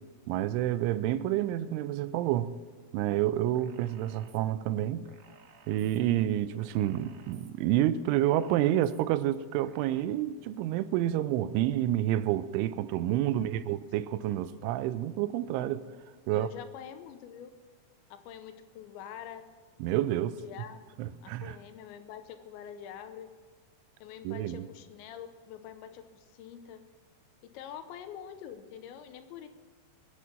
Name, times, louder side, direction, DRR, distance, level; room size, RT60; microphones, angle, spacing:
voice 1, 0.3-2.5 2.9-5.1 5.7-15.9 16.3-16.5 19.8-20.4 21.0-21.6 24.2-24.7, right 13 dB, 90° right, 3.1 m, -29 dB
sound 1, 3.6-4.4 5.1-6.0 6.6-7.5 8.1-9.0 9.7-10.0, right 5 dB, 65° right, 3.5 m, -57 dB
voice 2, 13.4-13.8 16.3-17.5 18.1-19.5 20.4-23.3 24.0-26.8 27.4-29.5, left 9 dB, 80° left, 3.0 m, -46 dB
22.5 x 8.4 x 7.5 m
omnidirectional pair, 5.4 m